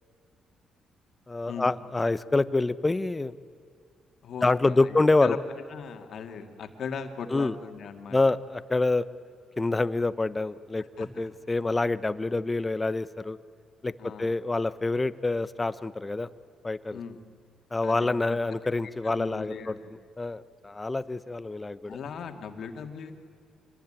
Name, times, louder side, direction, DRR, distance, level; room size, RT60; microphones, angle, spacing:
voice 1, 1.3-3.3 4.4-5.4 7.3-7.5 8.1-9.0 9.6-13.4 13.8-13.9 14.2-16.3 16.6-17.0 17.7-19.7 20.2-22.0, left 2 dB, 20° left, 15 dB, 0.8 m, -26 dB
voice 2, 4.2-5.4 5.7-8.2 10.8-11.1 14.0-14.3 16.9-17.2 17.8-18.4 18.8-19.9 21.8-23.1, left 6 dB, 65° left, 5 dB, 2.3 m, -39 dB
25.5 x 19.5 x 9.0 m, 2.4 s
cardioid pair, 90°, 0 cm